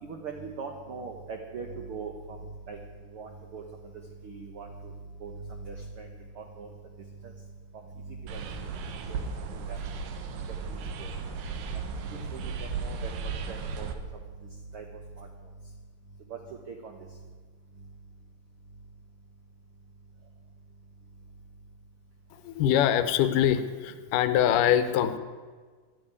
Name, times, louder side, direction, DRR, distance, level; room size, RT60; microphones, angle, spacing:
voice 1, 0.0-2.4 2.7-2.8 3.1-3.6 4.2-4.9 5.2-5.3 5.6-6.1 6.4-6.7 7.2-7.3 8.1-8.5 9.1-9.2 9.7-9.8 10.7-11.1 12.3-12.5 12.8-13.1 13.5-13.9 14.7-14.8 15.2-15.3 16.3-16.4 16.7-16.9, right 5 dB, 65° right, 3 dB, 1.4 m, -40 dB
sound 1, 8.3-13.9, right 5 dB, 85° right, 2.8 m, -35 dB
voice 2, 22.3-25.2, left 10 dB, 80° left, 11 dB, 2.4 m, -24 dB
11.5 x 10.0 x 9.7 m, 1.5 s
omnidirectional pair, 3.8 m